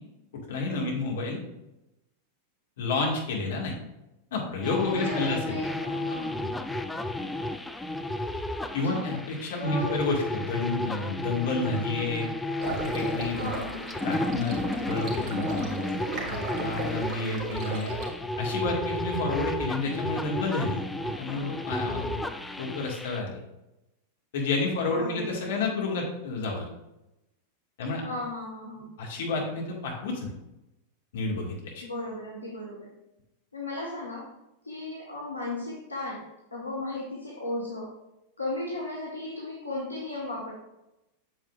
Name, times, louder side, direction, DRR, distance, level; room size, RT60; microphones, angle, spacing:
voice 1, 0.5-1.4 2.8-3.7 4.3-5.6 8.7-12.3 12.7-13.5 14.0-14.6 14.9-16.0 16.2-17.9 18.4-20.8 21.2-22.2 22.6-23.4 24.3-26.7 27.8-28.0 29.0-30.3 31.1-31.8, left 3 dB, 55° left, -1 dB, 2.1 m, -30 dB
sound 1, 4.6-23.2, left 1 dB, 5° left, 0.4 m, -33 dB
voice 2, 4.9-6.5 8.8-9.1 9.6-9.9 13.4-13.9 24.9-25.4 28.0-28.9 31.8-32.9 33.5-34.3 34.6-36.2 36.5-37.9 38.4-40.5, left 2 dB, 80° left, -3 dB, 1.5 m, -35 dB
sound 2, 12.6-18.1, right 2 dB, 25° right, 2.0 m, -36 dB
8.3 x 7.2 x 2.6 m, 0.92 s
figure-of-eight pair, 90°, 0 cm